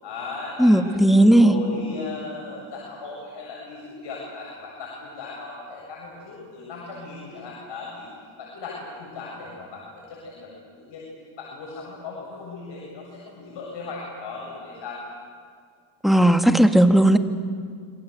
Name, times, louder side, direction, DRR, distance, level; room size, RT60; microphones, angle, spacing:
voice 1, 0.0-0.7 1.1-8.1 8.4-10.5 10.7-11.0 11.4-15.0, left 3 dB, 60° left, -3 dB, 7.9 m, -37 dB
voice 2, 0.6-1.6 16.0-17.2, right 1 dB, ahead, 6 dB, 1.7 m, -15 dB
27.5 x 24.5 x 8.2 m, 2.1 s
cardioid pair, 105°, 48 cm